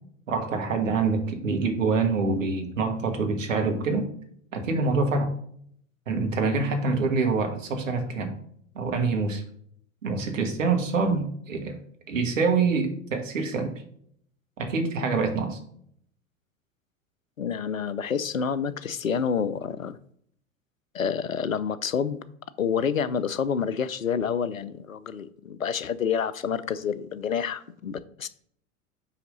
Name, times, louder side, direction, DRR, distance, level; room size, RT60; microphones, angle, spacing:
voice 1, 0.3-4.1 4.5-5.3 6.1-8.3 8.7-9.4 10.0-11.8 12.1-13.7 14.6-15.6, right 4 dB, 70° right, 1.6 m, -25 dB
voice 2, 17.4-20.0 20.9-22.2 22.6-28.3, left 7 dB, 85° left, 0.6 m, -28 dB
5.8 x 4.8 x 5.3 m
figure-of-eight pair, 85°, 39 cm